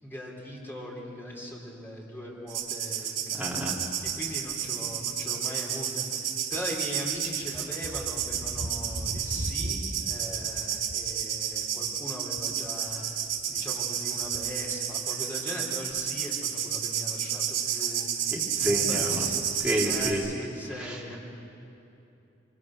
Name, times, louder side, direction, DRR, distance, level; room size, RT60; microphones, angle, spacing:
voice 1, 0.0-19.5 19.8-21.2, equal, 10° left, -3 dB, 4.1 m, -40 dB
sound 1, 2.5-20.1, right 8 dB, 85° right, 4.5 m, -31 dB
voice 2, 3.3-3.8 18.3-19.2 19.6-20.2 20.8-21.0, equal, 5° right, -4 dB, 2.8 m, -29 dB
25.5 x 24.5 x 6.3 m, 2.8 s
head